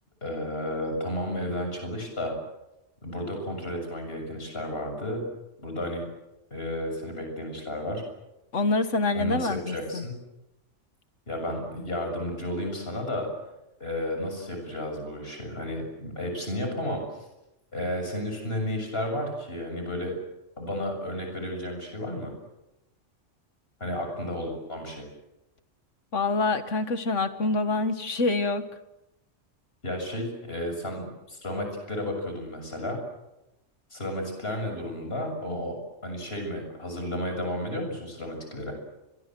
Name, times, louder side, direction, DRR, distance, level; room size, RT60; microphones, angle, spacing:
voice 1, 0.2-2.3 3.0-5.2 5.6-6.1 6.5-8.0 9.1-10.2 11.3-13.3 13.8-17.0 17.7-20.1 20.6-22.3 23.8-25.0 29.8-33.0 33.9-35.8 36.0-38.7, left 1 dB, 55° left, 4 dB, 7.4 m, -32 dB
voice 2, 8.5-10.1 26.1-28.6, left 3 dB, 75° left, 10 dB, 1.9 m, -26 dB
30.0 x 23.5 x 7.8 m, 0.94 s
omnidirectional pair, 1.3 m